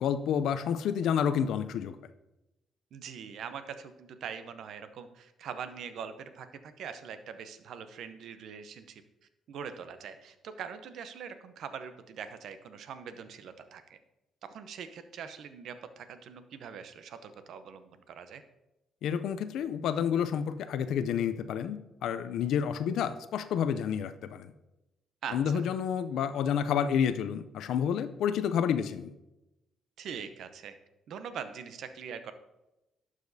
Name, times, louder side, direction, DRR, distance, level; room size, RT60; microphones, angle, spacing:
voice 1, 0.0-2.0 19.0-24.5 25.3-29.1, left 8 dB, 80° left, 11 dB, 0.4 m, -29 dB
voice 2, 2.9-9.0 9.5-14.0 14.4-18.4 25.2-25.6 30.0-30.8 31.1-32.3, right 7 dB, 75° right, 10 dB, 0.6 m, -42 dB
11.5 x 4.9 x 2.7 m, 0.95 s
cardioid pair, 90°, 0 cm